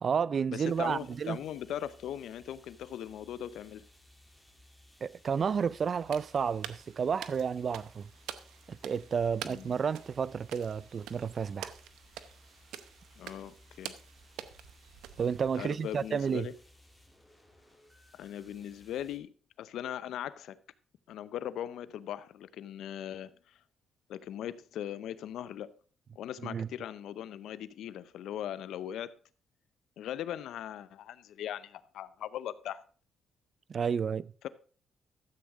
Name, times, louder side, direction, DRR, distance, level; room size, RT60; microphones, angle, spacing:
voice 1, 0.0-1.4 5.0-8.1 8.7-11.7 15.2-16.5 26.4-26.7 33.7-34.3, right 6 dB, 45° right, 0.4 m, -31 dB
voice 2, 0.5-3.8 9.4-9.7 13.2-14.0 15.6-16.5 18.1-20.6 21.1-23.6 24.1-25.7 26.2-29.2 30.0-32.8, left 11 dB, 80° left, 0.6 m, -39 dB
sound 1, 0.6-19.2, left 1 dB, ahead, 2.9 m, -60 dB
sound 2, 6.0-15.8, right 10 dB, 90° right, 0.7 m, -47 dB
13.5 x 8.0 x 3.6 m
cardioid pair, 90°, 0 cm